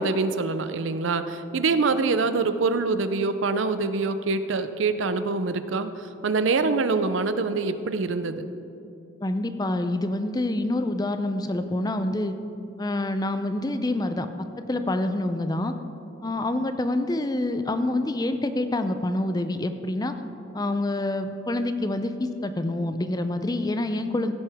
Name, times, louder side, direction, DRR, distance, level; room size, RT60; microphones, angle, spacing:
voice 1, 0.0-5.9 6.2-8.5, right 3 dB, 80° right, 11 dB, 0.6 m, -25 dB
voice 2, 9.2-12.3 12.8-14.3 14.7-15.7 16.2-20.1 20.5-24.3, left 1 dB, 20° left, 9 dB, 0.5 m, -27 dB
15.5 x 8.8 x 3.6 m, 2.7 s
head